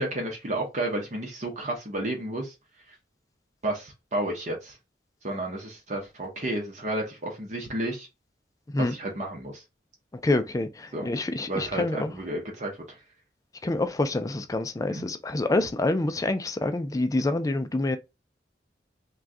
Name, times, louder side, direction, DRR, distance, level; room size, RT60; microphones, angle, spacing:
voice 1, 0.0-2.5 3.6-4.8 5.2-8.1 8.8-9.6 10.9-11.1 11.5-12.8 14.9-15.1, right 1 dB, 40° right, 0.8 m, -31 dB
voice 2, 10.2-12.1 13.6-18.0, left 2 dB, 20° left, 0.4 m, -27 dB
3.6 x 2.3 x 2.6 m
head